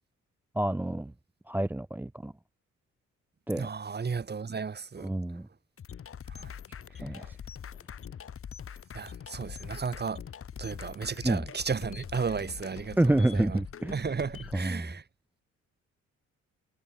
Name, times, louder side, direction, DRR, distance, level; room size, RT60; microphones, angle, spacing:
voice 1, 0.6-1.1 1.5-2.3 3.5-3.7 5.0-5.5 7.0-7.4 11.2-11.4 13.0-14.0 14.5-14.9, right 1 dB, 5° right, 0.5 m, -28 dB
voice 2, 3.5-5.1 6.3-6.5 6.9-7.3 8.9-10.2 10.6-13.6 13.9-15.0, right 5 dB, 35° right, 3.0 m, -34 dB
sound 1, 5.8-14.7, left 8 dB, 45° left, 1.8 m, -43 dB
cardioid pair, 90°, 30 cm